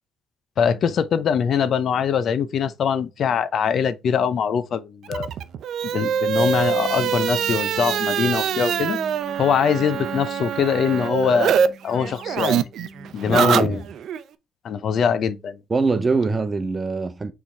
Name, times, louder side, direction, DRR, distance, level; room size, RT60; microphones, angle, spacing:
voice 1, 0.6-5.3 5.9-9.0 9.4-12.7 13.1-13.8 14.6-15.6, left 7 dB, 65° left, 0.7 m, -22 dB
sound 1, 5.1-11.7 11.9-14.2, right 8 dB, 70° right, 0.6 m, -24 dB
sound 2, 5.8-13.6, right 1 dB, 5° right, 2.0 m, -42 dB
voice 2, 13.2-13.8 15.7-17.3, right 4 dB, 25° right, 1.0 m, -23 dB
6.2 x 3.7 x 4.4 m
cardioid pair, 90°, 0 cm